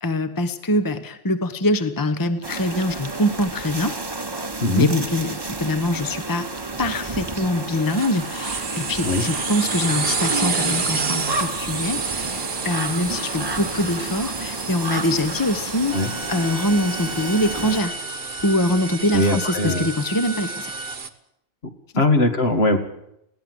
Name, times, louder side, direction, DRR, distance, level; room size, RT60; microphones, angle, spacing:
voice 1, 0.0-4.0 4.7-6.5 6.8-17.9 18.4-20.7 21.9-22.1, left 1 dB, 20° left, 10 dB, 1.1 m, -24 dB
sound 1, 2.4-17.8, right 2 dB, 20° right, 1.2 m, -31 dB
sound 2, 7.9-21.1, right 5 dB, 50° right, 1.5 m, -29 dB
sound 3, 15.9-20.9, right 1 dB, 85° right, 2.2 m, -35 dB
voice 2, 19.1-19.9 21.9-22.8, left 2 dB, 55° left, 6 dB, 2.3 m, -20 dB
20.5 x 17.0 x 7.9 m, 0.79 s
omnidirectional pair, 1.3 m